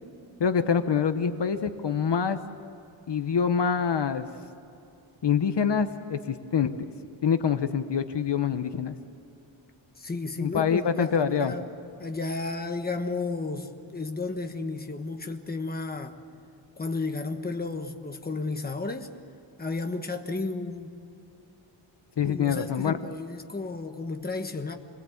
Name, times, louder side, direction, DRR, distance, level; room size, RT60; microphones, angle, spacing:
voice 1, 0.4-2.4 3.1-4.3 5.2-6.9 7.2-9.0 10.4-11.6 22.2-23.0, left 7 dB, 60° left, 1.0 m, -25 dB
voice 2, 10.0-11.7 12.0-16.2 16.8-19.1 19.6-20.9 22.2-24.7, left 3 dB, 20° left, 1.2 m, -33 dB
27.0 x 21.0 x 8.5 m
wide cardioid pair, 170°, 48 cm